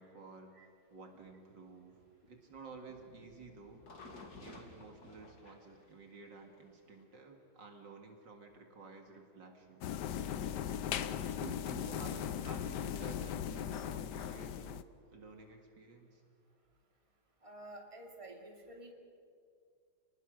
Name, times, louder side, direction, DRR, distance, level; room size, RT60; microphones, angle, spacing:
voice 1, 0.0-2.0 2.3-3.8 4.4-9.9 10.8-14.8 15.1-16.2, right 4 dB, 60° right, 3 dB, 2.6 m, -52 dB
sound 1, 1.1-7.0, left 3 dB, 50° left, 2.6 m, -56 dB
sound 2, 9.8-14.8, left 9 dB, 65° left, 1.2 m, -38 dB
voice 2, 17.4-18.9, right 1 dB, 15° right, 1 dB, 2.7 m, -50 dB
29.0 x 20.0 x 6.4 m, 2.2 s
omnidirectional pair, 2.3 m